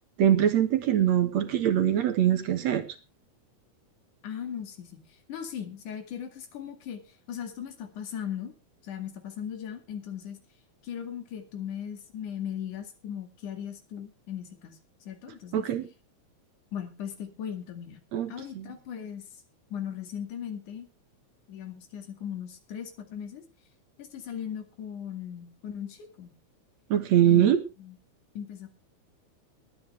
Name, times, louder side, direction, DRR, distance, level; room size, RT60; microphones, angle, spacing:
voice 1, 0.2-2.8 15.5-15.9 18.1-18.7 26.9-27.6, right 10 dB, 65° right, 9 dB, 2.5 m, -23 dB
voice 2, 4.2-8.5 8.8-10.4 10.8-15.7 16.7-18.0 18.3-19.4 19.7-20.9 21.5-23.4 24.0-26.3 27.2-27.5 27.8-28.0 28.4-28.7, left 9 dB, 85° left, 7 dB, 3.6 m, -38 dB
21.0 x 9.6 x 3.4 m, 0.30 s
omnidirectional pair, 3.5 m